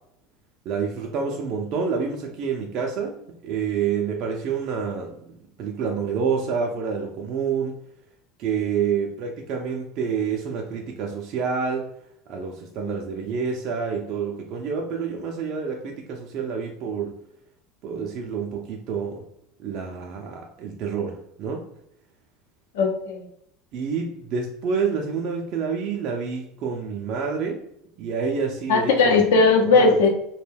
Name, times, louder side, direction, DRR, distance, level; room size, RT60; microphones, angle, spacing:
voice 1, 0.7-5.1 5.6-7.7 8.4-11.8 12.3-17.1 17.8-19.2 19.6-21.6 23.7-27.6 28.0-29.1 29.7-30.1, right 6 dB, 55° right, 1 dB, 0.4 m, -28 dB
voice 2, 22.7-23.3 28.7-30.1, left 4 dB, 80° left, 1 dB, 0.6 m, -18 dB
2.2 x 2.2 x 3.3 m, 0.75 s
supercardioid pair, 95°, 0 cm